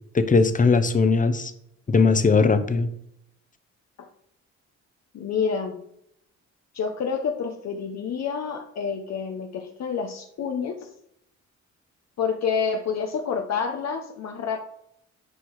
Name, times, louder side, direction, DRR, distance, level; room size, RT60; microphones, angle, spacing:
voice 1, 0.1-1.5 1.9-2.9, left 4 dB, 25° left, 11 dB, 0.9 m, -19 dB
voice 2, 5.1-5.8 6.7-10.9 12.2-14.6, left 6 dB, 60° left, 3 dB, 0.9 m, -28 dB
9.9 x 4.6 x 4.7 m, 0.73 s
cardioid pair, 90°, 30 cm